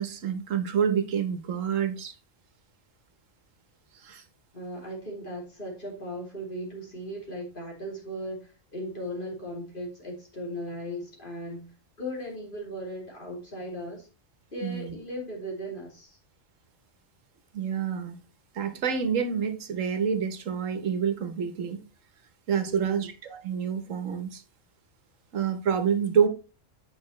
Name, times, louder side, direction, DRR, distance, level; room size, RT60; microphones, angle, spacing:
voice 1, 0.0-2.1 3.9-4.2 14.6-14.9 17.5-18.2 18.5-21.8 22.5-24.4 25.3-26.3, right 7 dB, 80° right, 1.4 m, -28 dB
voice 2, 4.5-11.7 12.0-14.1 14.5-16.2 22.6-23.1, equal, 40° left, 3.0 m, -37 dB
8.6 x 5.8 x 3.1 m
omnidirectional pair, 1.3 m